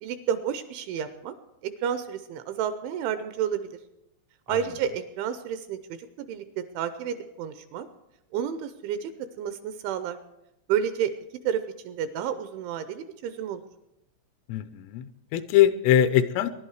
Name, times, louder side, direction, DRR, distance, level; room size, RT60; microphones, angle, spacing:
voice 1, 0.0-1.3 1.6-3.8 4.5-7.9 8.3-9.1 9.4-10.2 10.7-11.1 11.4-13.7, right 8 dB, 80° right, 10 dB, 2.9 m, -30 dB
voice 2, 14.5-16.5, left 11 dB, 85° left, 12 dB, 3.3 m, -22 dB
23.5 x 11.5 x 4.8 m, 0.89 s
omnidirectional pair, 5.9 m